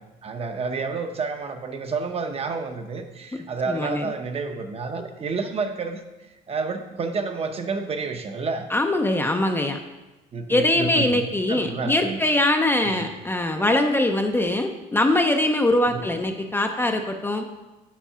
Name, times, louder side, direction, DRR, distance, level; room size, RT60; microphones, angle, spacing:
voice 1, 0.2-6.0 6.5-8.7 10.3-12.2 12.8-13.1 15.9-16.1, right 4 dB, 35° right, 6 dB, 0.8 m, -30 dB
voice 2, 3.7-4.1 8.7-9.8 10.5-17.4, left 1 dB, 15° left, 4 dB, 0.5 m, -22 dB
7.3 x 4.6 x 5.6 m, 1.1 s
cardioid pair, 110°, 17 cm